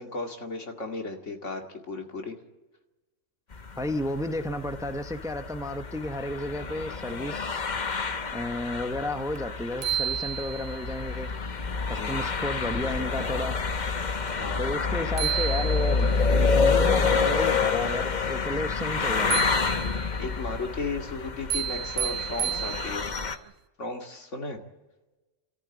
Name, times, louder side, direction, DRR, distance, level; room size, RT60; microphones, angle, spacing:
voice 1, 0.0-2.4 3.8-3.9 12.0-12.2 14.3-14.7 20.1-23.1 23.8-24.6, left 3 dB, 80° left, 4 dB, 2.6 m, -35 dB
sound 1, 3.5-23.4, left 4 dB, 40° left, 1.1 m, -28 dB
voice 2, 3.8-7.6 8.3-11.3 11.9-13.6 14.6-19.4, left 1 dB, 5° right, 8 dB, 0.9 m, -32 dB
sound 2, 9.4-9.5 9.8-10.9 14.8-14.9 15.2-16.2 19.3-20.2 21.5-23.2, right 11 dB, 75° right, 1.2 m, -31 dB
27.0 x 14.0 x 8.9 m, 1.1 s
omnidirectional pair, 1.2 m